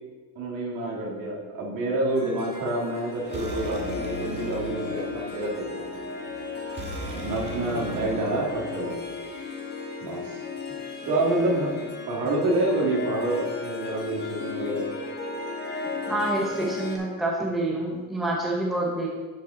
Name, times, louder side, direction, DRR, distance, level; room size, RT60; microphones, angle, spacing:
voice 1, 0.4-6.0 7.2-9.0 10.0-10.4 11.0-14.8, right 2 dB, 55° right, -3 dB, 2.5 m, -28 dB
Harp, 2.1-17.0, left 4 dB, 25° left, 1.2 m, -35 dB
sound 1, 3.2-9.2, right 1 dB, 25° right, 1.5 m, -38 dB
voice 2, 16.1-19.1, right 1 dB, ahead, -2 dB, 0.8 m, -27 dB
11.0 x 5.2 x 4.0 m, 1.4 s
cardioid pair, 155°, 39 cm